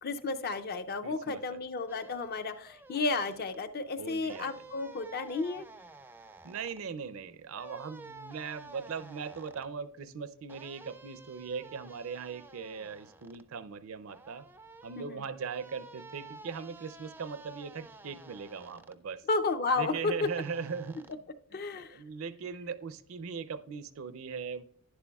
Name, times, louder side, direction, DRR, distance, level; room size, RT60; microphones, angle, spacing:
voice 1, 0.0-5.7 15.0-15.2 19.3-20.3 21.5-22.0, left 3 dB, 45° left, 9 dB, 0.5 m, -32 dB
voice 2, 1.0-1.6 3.9-4.6 6.4-14.5 14.8-19.2 19.8-21.2 21.5-24.6, right 5 dB, 70° right, 15 dB, 0.5 m, -40 dB
sound 1, 1.9-3.6 4.3-6.8 7.5-9.7 10.5-13.4 14.1-19.0 20.2-21.1, right 3 dB, 10° right, 0.3 m, -52 dB
11.0 x 10.5 x 2.3 m, 0.62 s
head